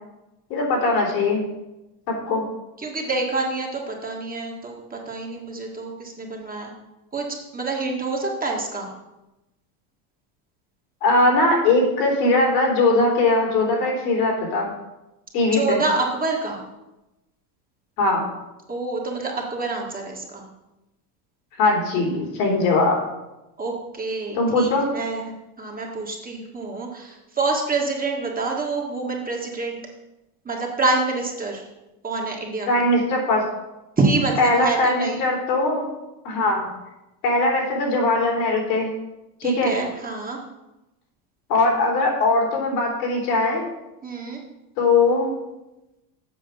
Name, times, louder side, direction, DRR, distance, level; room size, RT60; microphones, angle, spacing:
voice 1, 0.5-1.4 2.3-2.5 11.0-14.7 15.3-15.8 18.0-18.3 21.6-23.0 24.3-24.9 32.7-33.4 34.4-35.9 36.2-36.7 37.2-38.9 39.4-39.7 41.5-43.6 44.8-45.3, left 2 dB, 80° left, 0 dB, 3.4 m, -20 dB
voice 2, 2.8-6.7 7.1-7.2 7.5-8.9 15.5-16.6 18.7-20.4 23.6-25.3 25.6-29.8 30.4-31.7 32.0-32.9 34.0-35.2 39.4-40.4 44.0-44.4, right 3 dB, 20° right, 0 dB, 1.8 m, -27 dB
7.8 x 5.2 x 7.0 m, 0.96 s
supercardioid pair, 120°, 48 cm